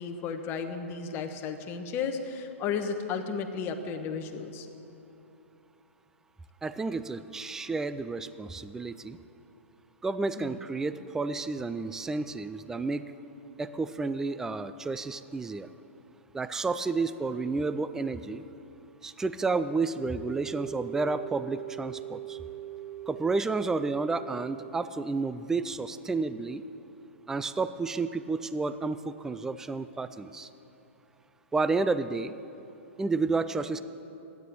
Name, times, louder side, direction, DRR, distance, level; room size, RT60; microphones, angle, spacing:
voice 1, 0.0-4.7 10.4-10.6, left 6 dB, 30° left, 6 dB, 1.2 m, -34 dB
voice 2, 6.6-9.2 10.0-13.1 13.6-15.7 16.3-18.4 19.0-22.4 23.1-26.6 27.3-30.5 31.5-32.3 33.0-33.8, right 3 dB, 5° right, 13 dB, 0.3 m, -31 dB
sound 1, 19.8-24.7, right 12 dB, 85° right, 1.3 m, -41 dB
13.0 x 9.5 x 8.2 m, 3.0 s
hypercardioid pair, 135°, 7 cm